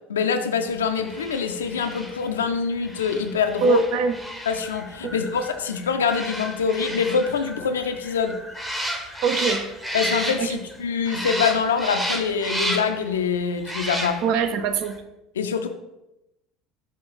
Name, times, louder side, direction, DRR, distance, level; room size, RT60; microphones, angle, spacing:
voice 1, 0.1-3.8 4.5-8.4 9.9-14.2 15.4-15.7, left 6 dB, 85° left, 5 dB, 0.4 m, -24 dB
sound 1, 1.0-10.8 11.1-13.1 13.6-14.5 14.8-14.9, equal, 10° right, 0.8 m, -32 dB
voice 2, 3.6-4.2 5.0-5.1 9.2-9.6 10.4-10.6 14.2-14.9, right 5 dB, 60° right, 10 dB, 0.5 m, -23 dB
5.6 x 2.4 x 3.9 m, 0.92 s
hypercardioid pair, 75°, 0 cm